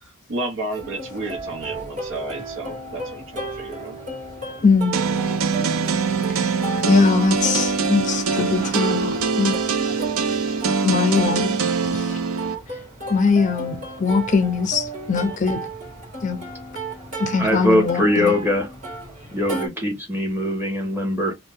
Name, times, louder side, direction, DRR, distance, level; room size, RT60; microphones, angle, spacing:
voice 1, 0.0-4.0, right 2 dB, 65° right, 0.9 m, -32 dB
Plucked string instrument, 0.7-19.7, right 2 dB, 35° right, 1.6 m, -34 dB
voice 2, 4.6-4.9 6.8-9.6 10.8-11.5 11.8-12.1 13.1-15.6 16.2-16.4 17.2-18.3, left 5 dB, 35° left, 0.5 m, -21 dB
sound 1, 4.9-12.5, right 5 dB, 85° right, 0.5 m, -23 dB
voice 3, 17.4-18.7 19.3-21.3, left 1 dB, 10° right, 1.1 m, -21 dB
2.7 x 2.2 x 3.4 m
head